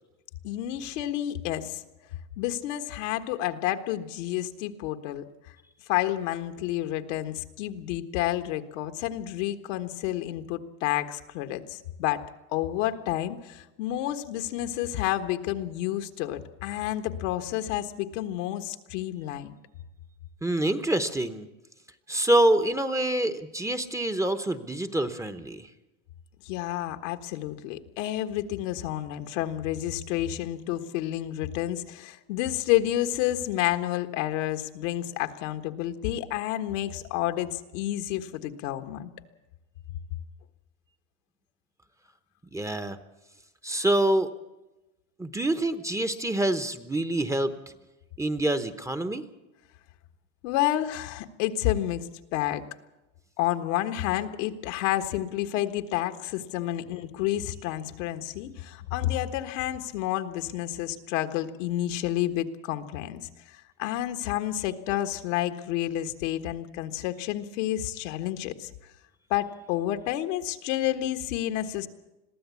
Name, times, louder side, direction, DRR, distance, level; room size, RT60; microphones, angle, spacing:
voice 1, 0.4-1.8 2.4-5.2 5.9-12.2 12.5-19.5 26.4-39.1 50.4-52.6 53.4-68.7 69.3-71.9, left 13 dB, 80° left, 7 dB, 1.5 m, -30 dB
voice 2, 20.4-21.5 22.1-25.7 42.5-43.0 43.6-44.3 45.2-47.5 48.2-49.2, right 1 dB, 10° right, 8 dB, 0.9 m, -26 dB
22.0 x 14.5 x 8.4 m, 1.0 s
supercardioid pair, 120°, 37 cm